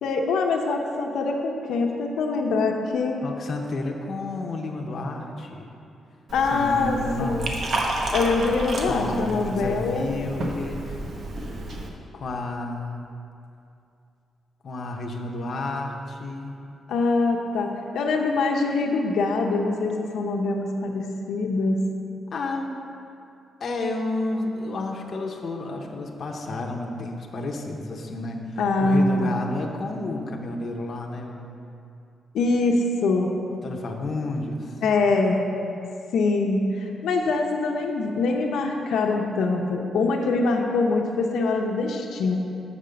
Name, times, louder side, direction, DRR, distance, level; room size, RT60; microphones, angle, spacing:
voice 1, 0.0-3.2 6.3-7.5 8.1-10.1 16.9-21.9 28.6-29.3 32.3-33.3 34.8-35.4 36.1-42.3, left 3 dB, 90° left, 1 dB, 0.7 m, -24 dB
voice 2, 3.2-5.7 6.5-7.5 8.8-11.0 12.1-13.0 14.6-16.5 22.3-22.8 23.6-31.5 33.5-34.8, left 2 dB, 45° left, 1 dB, 0.7 m, -31 dB
Liquid, 6.3-11.9, right 1 dB, 50° right, 0.9 m, -31 dB
6.7 x 5.2 x 6.8 m, 2.6 s
wide cardioid pair, 150°, 0 cm